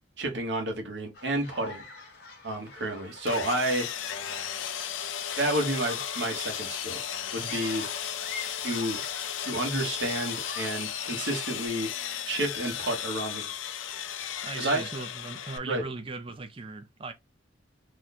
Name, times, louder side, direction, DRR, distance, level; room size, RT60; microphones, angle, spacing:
voice 1, 0.2-1.8 2.4-3.9 5.4-7.0 7.3-7.9 8.6-9.0 9.4-11.9 12.3-13.4 14.6-14.8 15.7-15.8, right 1 dB, 70° right, 1.2 m, -30 dB
sound 1, 1.1-11.7, left 4 dB, 55° left, 0.9 m, -45 dB
Sawing, 3.3-15.6, left 9 dB, 90° left, 0.5 m, -35 dB
voice 2, 14.4-17.1, right 3 dB, 30° right, 0.4 m, -38 dB
3.0 x 2.2 x 4.0 m
head